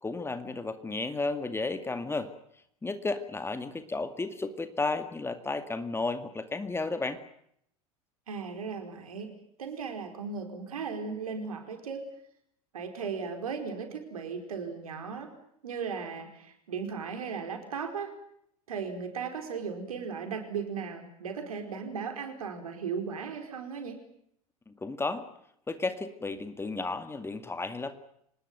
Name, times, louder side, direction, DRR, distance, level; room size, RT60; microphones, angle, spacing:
voice 1, 0.0-2.3 2.8-7.2 24.7-25.3 25.7-28.0, left 3 dB, 15° left, 9 dB, 2.1 m, -33 dB
voice 2, 8.3-9.3 9.6-12.0 12.7-15.3 15.6-18.1 18.7-24.0, right 5 dB, 70° right, 5 dB, 4.8 m, -36 dB
25.5 x 20.5 x 9.1 m, 0.72 s
figure-of-eight pair, 75°, 19 cm